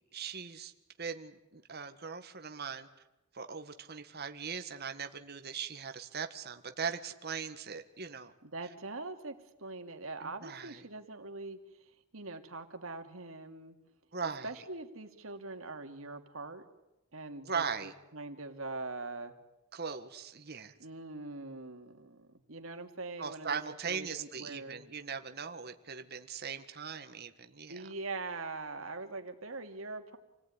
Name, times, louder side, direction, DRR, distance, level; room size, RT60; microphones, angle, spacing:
voice 1, 0.1-0.7 1.0-2.9 3.3-8.3 10.2-10.8 14.1-14.5 17.4-17.9 19.7-20.7 23.2-27.9, right 6 dB, 50° right, 7 dB, 1.7 m, -39 dB
voice 2, 8.4-11.6 12.1-13.8 14.4-16.6 17.1-17.6 18.1-19.3 20.8-23.6 23.8-24.8 27.7-30.2, right 3 dB, 80° right, 6 dB, 2.7 m, -42 dB
28.5 x 18.0 x 9.9 m, 0.98 s
head